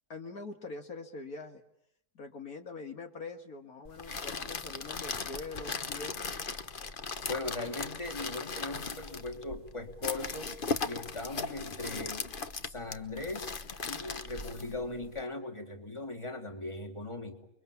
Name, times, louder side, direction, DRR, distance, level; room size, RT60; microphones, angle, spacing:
voice 1, 0.1-1.6 2.2-6.3, left 3 dB, 65° left, 5 dB, 2.2 m, -44 dB
sound 1, 3.8-15.2, left 4 dB, 35° left, 1.1 m, -38 dB
voice 2, 7.3-10.6 10.8-12.4 12.6-13.5 13.8-17.5, left 2 dB, 15° left, 3 dB, 3.2 m, -39 dB
29.5 x 23.5 x 7.2 m, 0.76 s
omnidirectional pair, 1.7 m